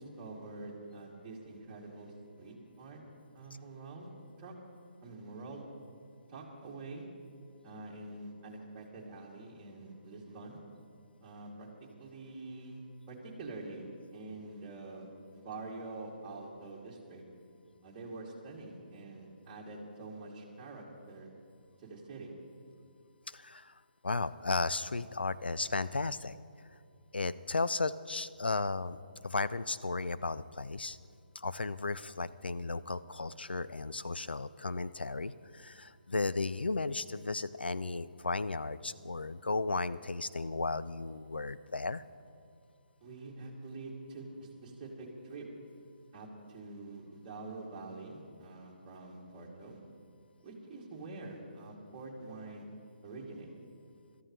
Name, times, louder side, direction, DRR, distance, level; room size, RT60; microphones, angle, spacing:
voice 1, 0.0-3.0 3.3-4.1 4.4-4.5 5.0-5.6 6.3-7.1 7.6-10.6 11.2-11.7 12.0-17.2 17.8-21.3 21.8-22.3 43.0-45.5 46.1-49.8 50.4-52.7 53.0-53.5, right 2 dB, 20° right, -5 dB, 2.8 m, -46 dB
voice 2, 23.3-23.7 24.0-26.4 27.1-29.0 29.2-31.0 31.3-42.0, left 3 dB, 80° left, 14 dB, 0.5 m, -35 dB
26.0 x 13.5 x 3.3 m, 2.3 s
figure-of-eight pair, 145°, 5 cm